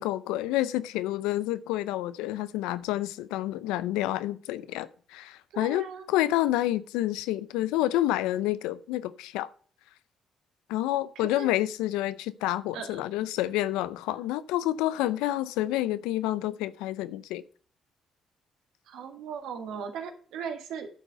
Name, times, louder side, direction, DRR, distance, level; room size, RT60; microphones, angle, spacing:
voice 1, 0.0-9.5 10.7-17.4, left 14 dB, 90° left, 0.5 m, -29 dB
voice 2, 5.5-6.1 11.2-11.5 12.7-13.0 18.9-20.9, right 6 dB, 80° right, 1.7 m, -38 dB
10.5 x 4.6 x 6.6 m
supercardioid pair, 65°, 0 cm